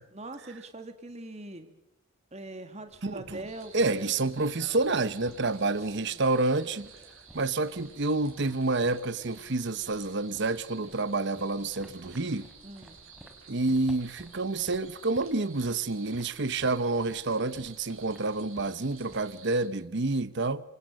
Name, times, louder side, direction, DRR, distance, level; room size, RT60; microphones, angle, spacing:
voice 1, 0.1-1.7 2.3-4.2 5.4-5.8 6.0-6.2 12.6-13.0, right 2 dB, 30° right, 2.5 m, -42 dB
sound 1, 2.9-19.3, equal, 5° right, 3.6 m, -56 dB
sound 2, 3.4-19.7, right 5 dB, 75° right, 6.9 m, -52 dB
voice 2, 3.7-6.9 7.3-12.5 13.5-20.6, right 3 dB, 55° right, 1.0 m, -28 dB
27.0 x 26.0 x 6.6 m
head